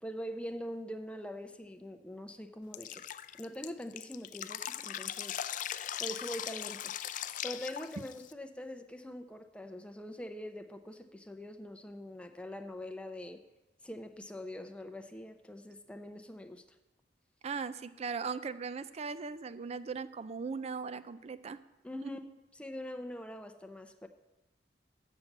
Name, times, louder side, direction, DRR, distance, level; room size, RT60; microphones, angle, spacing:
voice 1, 0.0-3.0 3.4-5.4 6.0-6.9 7.4-13.4 13.8-16.6 21.8-22.2 22.6-24.1, left 1 dB, 5° left, 6 dB, 0.6 m, -43 dB
Drip, 2.7-8.3, left 11 dB, 45° left, 0.3 m, -39 dB
voice 2, 17.4-21.6 22.0-22.1, right 5 dB, 35° right, 13 dB, 0.4 m, -38 dB
7.3 x 6.8 x 7.9 m, 0.99 s
head